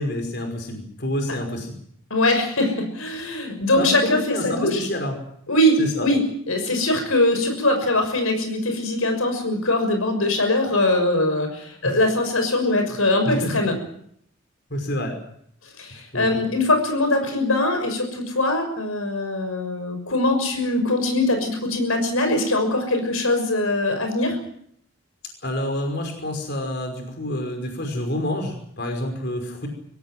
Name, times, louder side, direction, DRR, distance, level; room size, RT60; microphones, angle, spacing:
voice 1, 0.0-1.7 3.8-5.2 5.8-6.1 11.8-11.9 13.2-13.6 14.7-15.2 16.1-16.4 25.4-29.7, left 1 dB, 50° left, 4 dB, 5.5 m, -28 dB
voice 2, 2.1-4.9 5.5-13.7 15.8-24.4, left 1 dB, 90° left, 6 dB, 6.2 m, -22 dB
24.5 x 17.0 x 9.3 m, 0.69 s
head